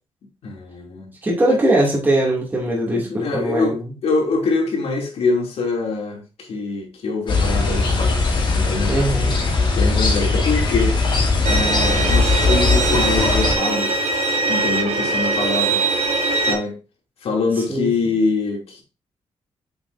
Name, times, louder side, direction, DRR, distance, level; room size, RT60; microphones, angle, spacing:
voice 1, 0.4-1.1 1.5-1.6 2.9-9.0 9.7-11.0 11.4-14.0 14.5-15.8 16.4-16.8 17.2-18.8, left 3 dB, 75° left, 2.9 m, -24 dB
voice 2, 1.2-3.9 8.9-9.3 17.7-18.2, right 1 dB, 15° right, 2.7 m, -21 dB
sound 1, 7.3-13.5, left 3 dB, 50° left, 2.8 m, -19 dB
Bowed string instrument, 11.5-16.5, right 3 dB, 80° right, 1.6 m, -21 dB
7.9 x 7.4 x 2.7 m
wide cardioid pair, 170°, 10 cm